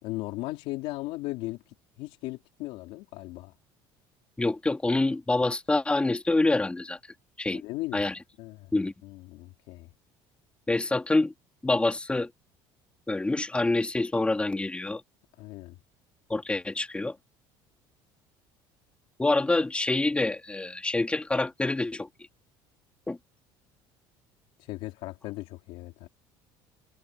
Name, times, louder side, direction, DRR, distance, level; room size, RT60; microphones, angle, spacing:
voice 1, 0.0-1.6 2.0-3.5 7.5-8.1 8.4-8.7 9.0-9.9 15.4-15.8 24.6-26.1, left 19 dB, 75° left, 3.5 m, -37 dB
voice 2, 4.4-7.0 7.4-7.6 7.9-8.1 8.7-8.9 10.7-11.3 11.6-12.3 13.1-15.0 16.3-17.2 19.2-22.1 23.1-23.2, left 2 dB, 10° left, 2.3 m, -26 dB
cardioid pair, 115°, 10 cm